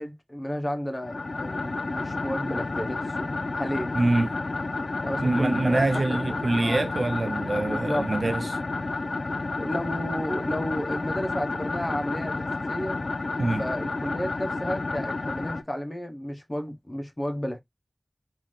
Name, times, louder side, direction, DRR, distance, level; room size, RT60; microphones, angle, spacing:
voice 1, 0.0-4.0 5.0-5.8 6.1-6.2 6.6-6.8 7.5-8.1 9.4-13.0 13.6-17.6, equal, 35° left, 1.0 m, -32 dB
sound 1, 1.0-15.6, left 3 dB, 80° left, 0.4 m, -31 dB
voice 2, 4.0-4.3 5.2-8.6 13.4-13.6, right 2 dB, 90° right, 0.4 m, -25 dB
3.9 x 2.7 x 3.2 m
wide cardioid pair, 45°, 0 cm